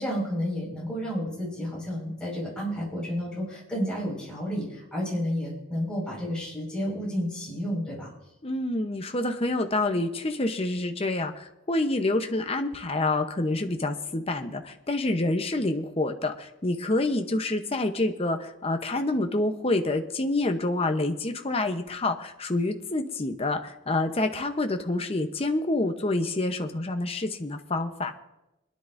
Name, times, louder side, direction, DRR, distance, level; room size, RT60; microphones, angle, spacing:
voice 1, 0.0-8.1, equal, 5° left, -6 dB, 5.1 m, -31 dB
voice 2, 8.4-28.1, left 2 dB, 25° left, 6 dB, 0.8 m, -27 dB
26.0 x 10.5 x 2.6 m, 0.94 s
head